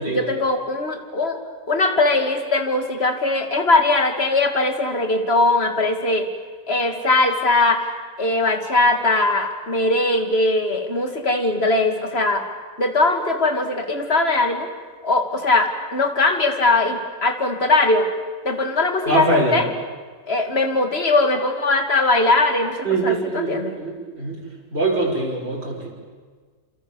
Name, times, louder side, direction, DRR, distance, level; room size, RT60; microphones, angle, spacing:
voice 1, 0.0-1.4 1.7-6.3 6.7-7.9 8.2-12.4 12.8-14.7 15.0-18.1 18.4-19.7 20.3-23.8, left 2 dB, 35° left, 6 dB, 2.7 m, -20 dB
voice 2, 19.1-19.6 22.8-24.4 24.7-25.9, right 2 dB, 35° right, -4 dB, 5.9 m, -23 dB
28.5 x 28.0 x 7.2 m, 1.5 s
omnidirectional pair, 1.8 m